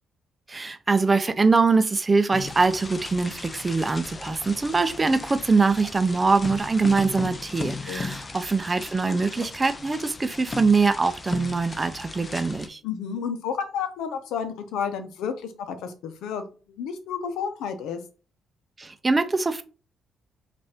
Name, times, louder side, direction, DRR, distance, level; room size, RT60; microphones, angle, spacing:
voice 1, 0.5-12.8 18.8-19.6, right 4 dB, 25° right, 0.5 m, -23 dB
sound 1, 2.3-12.7, left 3 dB, 25° left, 0.6 m, -37 dB
voice 2, 7.9-8.2 12.8-16.4 16.7-18.0, left 7 dB, 90° left, 0.8 m, -31 dB
5.3 x 2.6 x 3.5 m
cardioid pair, 90°, 0 cm